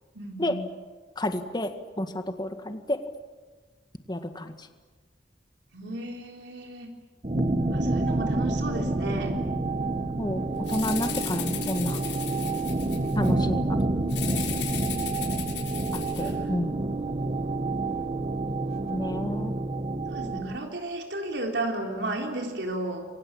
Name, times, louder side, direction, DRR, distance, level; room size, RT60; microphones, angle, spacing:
voice 1, 0.1-0.5 5.7-6.9 7.9-9.3 16.2-16.3 20.1-23.1, right 2 dB, 75° right, 2 dB, 3.8 m, -33 dB
voice 2, 1.2-1.7 2.0-3.0 4.1-4.7 7.3-7.7 10.2-12.0 12.4-12.6 13.2-13.8 16.2-16.8 18.9-19.5, left 1 dB, 25° left, 7 dB, 1.8 m, -30 dB
sound 1, 7.2-20.6, right 2 dB, 35° right, 1.3 m, -28 dB
Rattle (instrument), 10.6-13.3 14.1-16.3, left 11 dB, 90° left, 7.1 m, -36 dB
28.5 x 23.5 x 8.7 m, 1.3 s
head